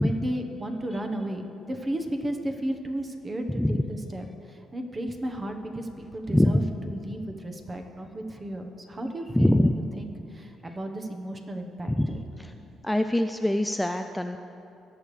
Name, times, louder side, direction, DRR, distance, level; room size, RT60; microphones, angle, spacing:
voice 1, 0.0-1.4 1.7-12.2, right 1 dB, 25° right, 4 dB, 1.1 m, -34 dB
voice 2, 3.5-3.8 6.3-6.7 9.4-9.8 11.9-12.1 12.4-12.5 12.8-14.4, left 1 dB, 5° left, 7 dB, 0.3 m, -23 dB
18.5 x 7.0 x 3.3 m, 2.8 s
cardioid pair, 90°, 0 cm